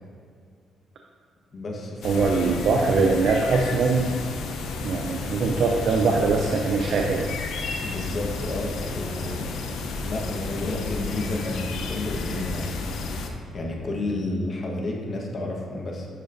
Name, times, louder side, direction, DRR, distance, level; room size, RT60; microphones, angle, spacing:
voice 1, 1.5-2.2 7.8-9.5 10.0-12.8 13.1-13.2 13.5-16.1, left 2 dB, 45° left, 0 dB, 1.2 m, -31 dB
sound 1, 2.0-13.3, left 3 dB, 80° left, 0.7 m, -32 dB
voice 2, 2.0-4.1 4.8-7.3, right 4 dB, 65° right, 1 dB, 0.5 m, -22 dB
10.0 x 4.8 x 2.6 m, 2.2 s
cardioid pair, 90°, 0 cm